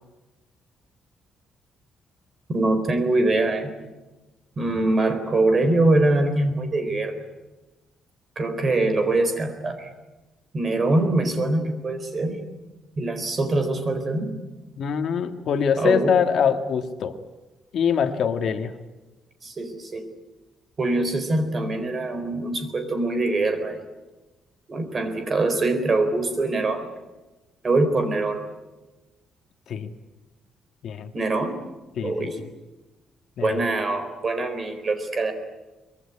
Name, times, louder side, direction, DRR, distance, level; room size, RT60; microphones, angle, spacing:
voice 1, 2.5-3.7 4.6-7.1 8.4-9.9 10.5-12.4 13.0-14.3 15.8-16.1 19.4-20.1 20.8-23.8 24.7-26.9 27.6-28.4 31.1-31.6 32.0-32.4 33.4-35.3, right 2 dB, 25° right, 8 dB, 4.1 m, -23 dB
voice 2, 14.8-17.2 17.7-18.7 29.7-29.9 30.8-31.1 32.0-32.3 33.4-33.6, left 7 dB, 55° left, 7 dB, 1.7 m, -24 dB
24.5 x 22.5 x 9.8 m, 1.1 s
cardioid pair, 180°, 0 cm